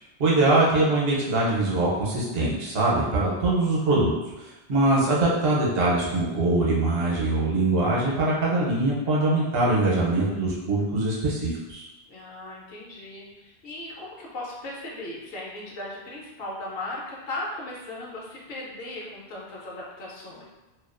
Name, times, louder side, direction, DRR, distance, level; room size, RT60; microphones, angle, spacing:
voice 1, 0.2-11.8, right 2 dB, 65° right, -4 dB, 0.9 m, -23 dB
voice 2, 12.1-20.4, left 2 dB, 70° left, -3 dB, 0.8 m, -37 dB
2.4 x 2.3 x 2.4 m, 1.0 s
omnidirectional pair, 1.1 m